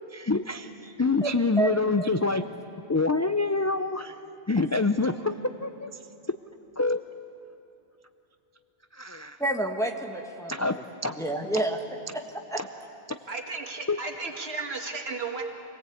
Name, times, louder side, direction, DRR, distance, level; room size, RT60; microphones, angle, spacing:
voice 1, 0.1-0.7 1.0-2.5 2.9-4.1 4.5-5.9 6.8-7.1 8.9-9.4 10.5-11.2 12.6-12.7 13.1-13.2 13.9-14.0, left 3 dB, 25° left, 9 dB, 0.3 m, -26 dB
voice 2, 9.4-10.7 11.0-11.8 12.1-12.6, right 2 dB, 5° left, 2 dB, 1.5 m, -29 dB
voice 3, 13.3-15.4, right 3 dB, 75° right, 3 dB, 2.0 m, -34 dB
25.5 x 18.5 x 8.5 m, 2.9 s
omnidirectional pair, 1.1 m